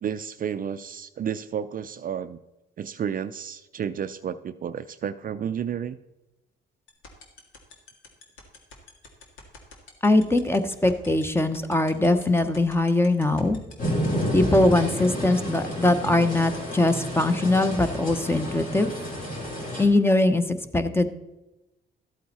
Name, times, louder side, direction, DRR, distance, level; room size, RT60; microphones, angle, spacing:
voice 1, 0.0-2.4 2.8-6.0, right 8 dB, 45° right, 12 dB, 0.5 m, -31 dB
sound 1, 6.9-17.7, left 5 dB, 85° left, 2.0 m, -46 dB
voice 2, 10.0-13.6 14.3-18.9 19.8-21.1, left 2 dB, 10° left, 9 dB, 0.9 m, -21 dB
sound 2, 13.8-19.8, equal, 45° left, 3.7 m, -30 dB
13.0 x 8.5 x 4.2 m, 0.98 s
cardioid pair, 90°, 20 cm